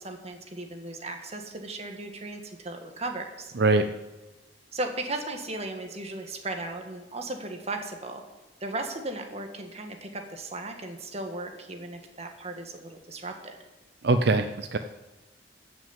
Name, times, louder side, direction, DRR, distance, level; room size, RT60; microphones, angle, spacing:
voice 1, 0.0-3.5 4.7-8.2 8.6-13.6, right 2 dB, 35° right, 4 dB, 1.6 m, -36 dB
voice 2, 14.0-14.8, right 3 dB, 65° right, 8 dB, 0.5 m, -22 dB
15.0 x 6.2 x 7.3 m, 1.1 s
head